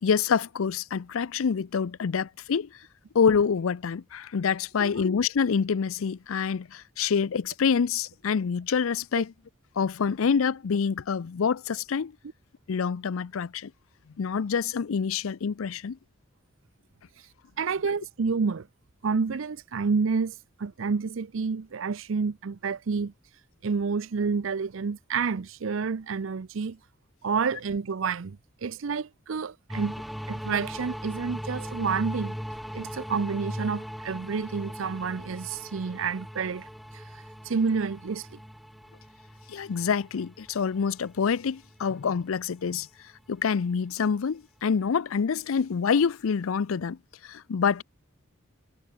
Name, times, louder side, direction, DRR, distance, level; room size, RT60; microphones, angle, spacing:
voice 1, 0.0-2.8 3.1-9.3 9.8-12.1 12.7-13.7 14.2-16.0 39.5-42.9 43.3-47.8, left 6 dB, 85° left, 0.5 m, -26 dB
voice 2, 17.6-18.7 19.0-20.3 20.6-23.1 23.6-26.8 27.2-30.0 30.3-32.4 32.7-36.7 36.9-37.0 37.4-38.4, right 5 dB, 70° right, 0.5 m, -29 dB
sound 1, 29.7-42.2, equal, ahead, 1.0 m, -39 dB
head